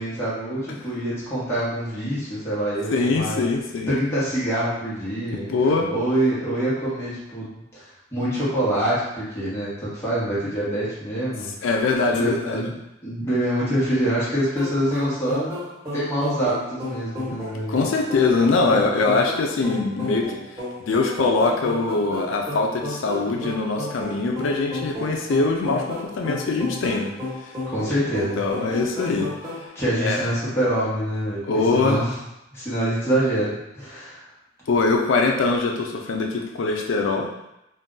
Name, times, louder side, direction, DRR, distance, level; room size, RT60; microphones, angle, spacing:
voice 1, 0.0-3.4 3.9-7.8 8.1-11.5 12.1-12.7 13.0-15.5 15.9-17.8 27.7-28.4 29.7-31.4 31.7-32.1 32.5-34.2, right 1 dB, 15° left, -10 dB, 1.1 m, -25 dB
voice 2, 2.9-4.0 5.5-5.9 11.6-12.7 17.7-20.3 20.9-27.1 27.4-27.5 28.4-29.5 30.0-30.3 31.4-32.0 34.7-37.3, left 3 dB, 70° left, 1 dB, 0.4 m, -22 dB
sound 1, 14.6-29.7, left 2 dB, 15° right, 1.2 m, -33 dB
2.6 x 2.2 x 3.7 m, 0.88 s
head